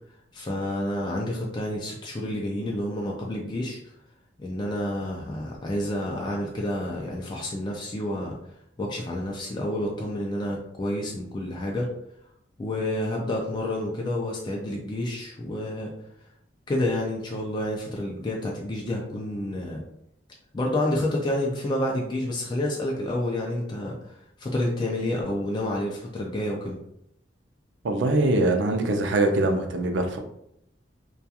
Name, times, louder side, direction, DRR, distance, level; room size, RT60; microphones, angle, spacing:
voice 1, 0.3-3.8 4.4-8.4 8.8-11.9 12.6-15.9 16.7-19.8 20.5-26.8, left 1 dB, 25° left, -2 dB, 0.3 m, -29 dB
voice 2, 27.8-30.2, right 2 dB, 75° right, 4 dB, 0.4 m, -23 dB
2.3 x 2.3 x 2.7 m, 0.75 s
head